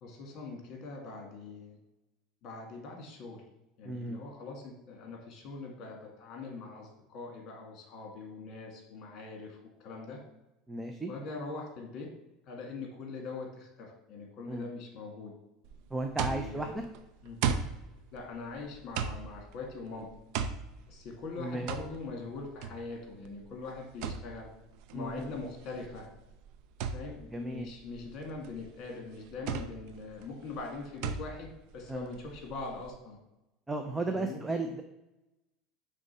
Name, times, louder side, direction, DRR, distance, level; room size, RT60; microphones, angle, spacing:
voice 1, 0.0-1.8 2.4-3.4 3.8-10.2 11.1-12.1 12.5-15.3 16.2-16.8 17.2-17.4 18.1-20.1 20.9-24.5 24.9-26.1 26.9-33.2 34.1-34.4, left 3 dB, 45° left, 1 dB, 1.9 m, -42 dB
voice 2, 3.8-4.2 10.7-11.1 14.5-14.7 15.9-16.8 21.4-21.7 24.9-25.3 27.3-27.7 31.9-32.2 33.7-34.8, right 2 dB, 10° right, 5 dB, 0.4 m, -35 dB
sound 1, 15.6-32.9, right 6 dB, 65° right, 0.5 m, -38 dB
5.2 x 3.6 x 5.4 m, 0.94 s
supercardioid pair, 145°, 0 cm